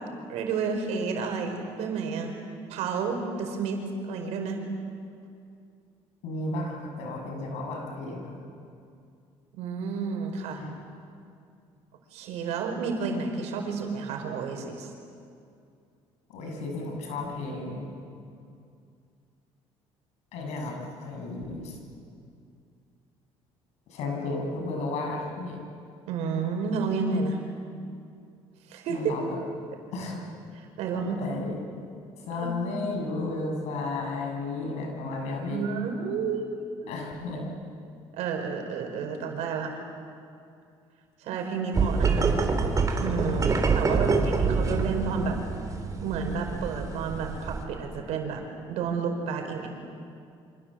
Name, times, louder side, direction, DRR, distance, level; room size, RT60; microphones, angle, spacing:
voice 1, 0.3-2.4 2.7-4.6 9.5-10.6 12.1-14.9 26.0-27.4 28.7-29.0 30.8-31.2 32.4-32.6 35.5-36.5 36.8-36.9 38.1-39.8 41.2-42.3 43.0-45.4 46.0-49.7, right 5 dB, 85° right, 4 dB, 5.0 m, -31 dB
voice 2, 6.2-8.4 10.5-10.8 16.3-17.9 20.3-21.8 23.9-25.6 28.9-29.4 29.9-30.3 31.0-31.6 32.3-35.6 36.9-37.5 43.8-44.6, left 2 dB, 80° left, 1 dB, 7.3 m, -33 dB
sound 1, 41.7-47.6, right 4 dB, 30° right, 3.5 m, -26 dB
28.5 x 26.0 x 7.8 m, 2.4 s
cardioid pair, 110°, 11 cm